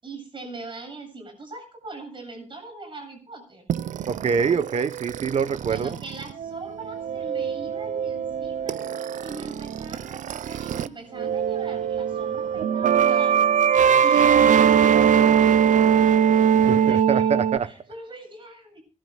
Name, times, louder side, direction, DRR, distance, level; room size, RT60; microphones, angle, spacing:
voice 1, 0.0-3.7 5.6-8.8 9.2-13.5 16.6-18.8, right 2 dB, 40° right, 7.9 m, -41 dB
sound 1, 3.7-10.9 11.2-17.6, right 8 dB, 80° right, 0.5 m, -21 dB
voice 2, 4.1-6.0 16.6-17.7, right 6 dB, 55° right, 1.0 m, -25 dB
27.0 x 11.5 x 2.3 m
wide cardioid pair, 115°, 13 cm